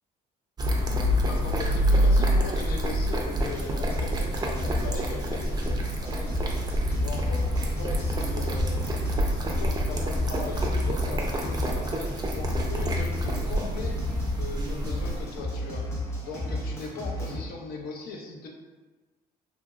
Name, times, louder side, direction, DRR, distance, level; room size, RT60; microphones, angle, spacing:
sound 1, 0.6-15.4, equal, 25° right, 0.4 m, -27 dB
voice 1, 1.3-6.4 6.9-9.0 9.3-15.9 16.2-18.5, left 3 dB, 65° left, 1 dB, 0.6 m, -39 dB
sound 2, 3.1-17.4, left 1 dB, 15° left, 0.8 m, -34 dB
2.8 x 2.6 x 2.3 m, 1.2 s
cardioid pair, 110°, 17 cm